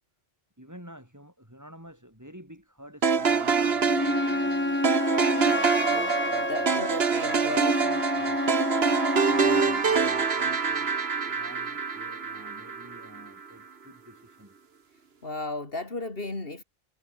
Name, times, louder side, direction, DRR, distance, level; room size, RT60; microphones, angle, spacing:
voice 1, 0.6-4.8 5.3-6.9 7.2-8.5 9.3-11.0 11.3-14.5, equal, 15° right, 7.1 m, -50 dB
sound 1, 3.0-13.3, right 5 dB, 70° right, 1.8 m, -26 dB
Wind instrument woodwind instrument, 3.8-9.8, left 2 dB, 10° left, 0.7 m, -29 dB
voice 2, 5.9-7.7 9.5-9.7 15.2-16.6, left 2 dB, 60° left, 4.0 m, -35 dB
omnidirectional pair, 1.1 m